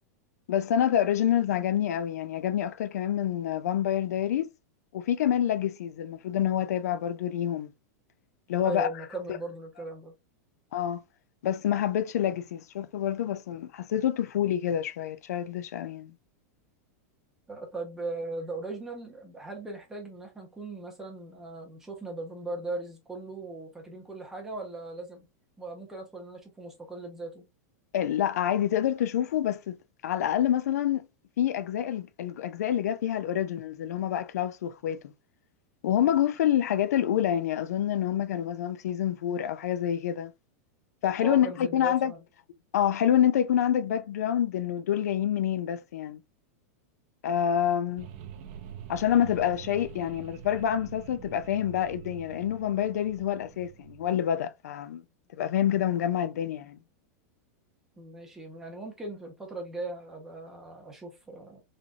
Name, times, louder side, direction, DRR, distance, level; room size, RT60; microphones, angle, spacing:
voice 1, 0.5-4.5 4.9-7.7 8.5-8.9 10.7-11.0 11.4-16.1 27.9-31.0 31.4-35.0 35.8-40.3 41.0-42.1 42.7-46.2 47.2-48.1 48.9-55.0 55.4-56.8, left 10 dB, 85° left, 0.5 m, -27 dB
voice 2, 8.6-10.1 17.5-25.3 25.6-27.4 41.2-42.2 58.0-61.6, right 2 dB, 5° right, 0.9 m, -38 dB
sound 1, 48.0-54.2, right 8 dB, 45° right, 0.8 m, -45 dB
3.8 x 3.3 x 2.3 m
supercardioid pair, 170°, 8 cm